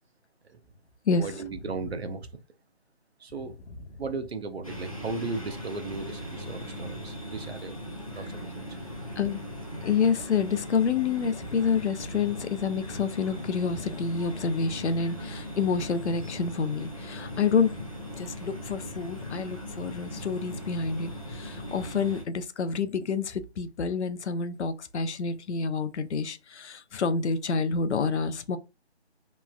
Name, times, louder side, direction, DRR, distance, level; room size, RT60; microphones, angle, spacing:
voice 1, 1.1-2.4 3.2-3.6 4.0-7.7 8.2-8.8, right 3 dB, 65° right, 0.6 m, -36 dB
sound 1, 4.6-22.2, equal, 30° left, 0.5 m, -39 dB
voice 2, 9.8-17.8 18.2-21.1 21.4-28.6, left 5 dB, 80° left, 0.5 m, -28 dB
3.0 x 2.3 x 2.2 m
figure-of-eight pair, 175°, 34 cm